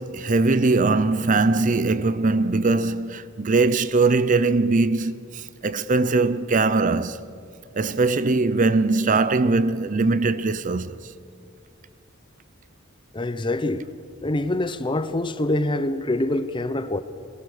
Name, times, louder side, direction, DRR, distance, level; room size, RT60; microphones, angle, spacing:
voice 1, 0.0-7.2 7.7-11.1, right 3 dB, 40° right, 0.6 m, -21 dB
voice 2, 13.1-13.9 14.2-17.0, left 1 dB, 25° left, 0.8 m, -25 dB
22.5 x 18.0 x 6.7 m
head